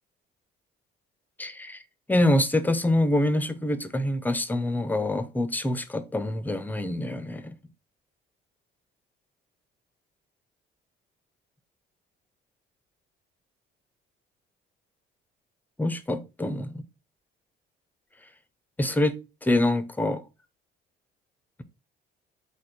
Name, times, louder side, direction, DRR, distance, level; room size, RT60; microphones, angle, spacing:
voice 1, 1.4-1.8 2.1-7.6 15.8-16.8 18.8-20.2, left 1 dB, 10° left, 0.5 m, -25 dB
4.0 x 2.5 x 4.4 m
cardioid pair, 100°, 20 cm